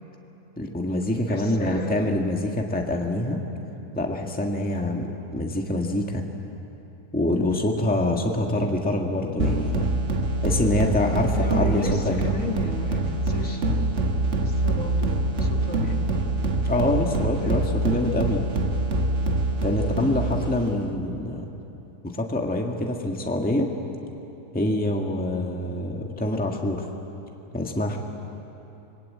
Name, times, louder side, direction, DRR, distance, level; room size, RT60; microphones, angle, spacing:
voice 1, 0.6-3.4 4.0-6.2 7.1-9.9 10.4-12.2 16.6-18.4 19.6-21.5 22.0-23.7 24.5-26.8 27.5-28.0, left 1 dB, 5° left, 1 dB, 1.7 m, -25 dB
voice 2, 1.3-2.2 11.4-13.7 14.4-16.1 17.4-17.9 19.8-20.1, left 2 dB, 55° left, 2 dB, 2.2 m, -34 dB
sound 1, 9.4-20.9, right 2 dB, 50° right, 1.5 m, -25 dB
26.0 x 21.5 x 8.7 m, 3.0 s
omnidirectional pair, 1.7 m